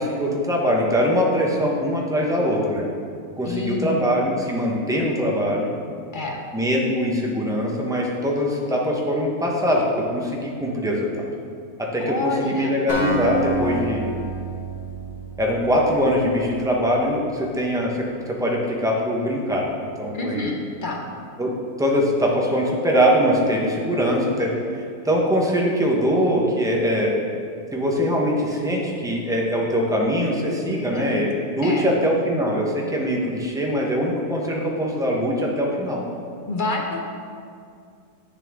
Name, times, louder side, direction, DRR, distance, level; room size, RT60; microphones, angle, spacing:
voice 1, 0.0-2.8 3.4-5.7 6.5-11.3 11.8-14.0 15.4-19.7 20.0-20.5 21.4-21.5 21.8-27.1 27.7-36.0, equal, 5° right, -2 dB, 0.7 m, -22 dB
voice 2, 3.4-4.0 6.1-6.4 12.0-12.8 20.1-21.0 30.9-31.2 31.6-31.9 36.5-37.0, left 2 dB, 45° left, 0 dB, 0.7 m, -28 dB
Acoustic guitar, 12.9-16.7, right 1 dB, 85° left, 2.4 m, -28 dB
8.4 x 6.8 x 3.6 m, 2.3 s
omnidirectional pair, 1.6 m